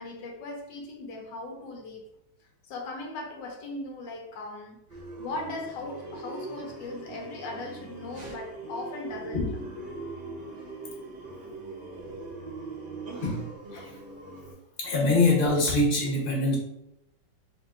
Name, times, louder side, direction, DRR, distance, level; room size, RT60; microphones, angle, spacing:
voice 1, 0.0-2.1 2.6-4.8 5.2-9.5 12.0-12.2, left 2 dB, 90° left, 1 dB, 1.4 m, -38 dB
sound 1, 4.9-14.5, right 3 dB, 45° right, 0.6 m, -41 dB
voice 2, 14.8-16.6, left 2 dB, 35° left, -2 dB, 1.1 m, -24 dB
3.3 x 2.8 x 3.6 m, 0.80 s
omnidirectional pair, 1.9 m